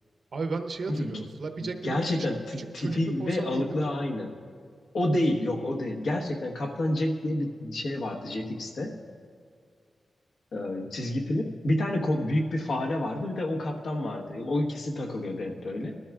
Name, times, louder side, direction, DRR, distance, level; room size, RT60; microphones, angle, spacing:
voice 1, 0.3-2.0 2.6-3.9, right 3 dB, 65° right, 6 dB, 0.9 m, -34 dB
voice 2, 1.6-4.3 4.9-9.0 10.5-16.0, left 1 dB, 75° left, 1 dB, 1.3 m, -29 dB
20.0 x 13.0 x 2.4 m, 2.1 s
wide cardioid pair, 140°, 0 cm